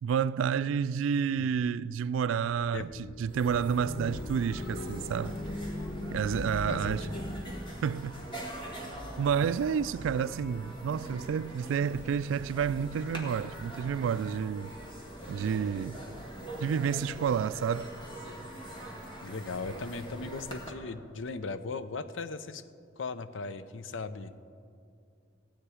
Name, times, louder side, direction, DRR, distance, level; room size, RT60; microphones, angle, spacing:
voice 1, 0.0-5.4 6.1-7.1 7.8-8.2 9.2-14.7 15.3-16.0 16.6-17.9, right 7 dB, 85° right, 0.3 m, -30 dB
Tangible Darkness, 2.8-7.4, left 2 dB, 50° left, 1.1 m, -39 dB
sound 1, 3.2-20.7, right 1 dB, 25° left, 1.8 m, -43 dB
voice 2, 6.7-7.3 19.2-22.6 23.0-24.3, left 4 dB, 80° left, 0.6 m, -38 dB
15.5 x 8.9 x 4.9 m
head